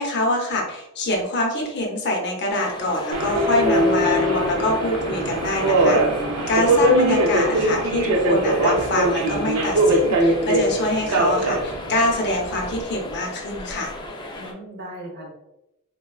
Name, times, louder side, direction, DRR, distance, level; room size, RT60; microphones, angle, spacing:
voice 1, 0.0-13.9, left 1 dB, 50° left, 1 dB, 0.7 m, -25 dB
sound 1, 2.5-14.5, left 1 dB, 20° left, 0.3 m, -36 dB
Subway metro underground, 3.1-12.8, right 1 dB, 75° right, 0.5 m, -21 dB
voice 2, 14.4-15.3, right 1 dB, 50° right, -2 dB, 0.9 m, -38 dB
3.9 x 2.2 x 2.3 m, 0.89 s
head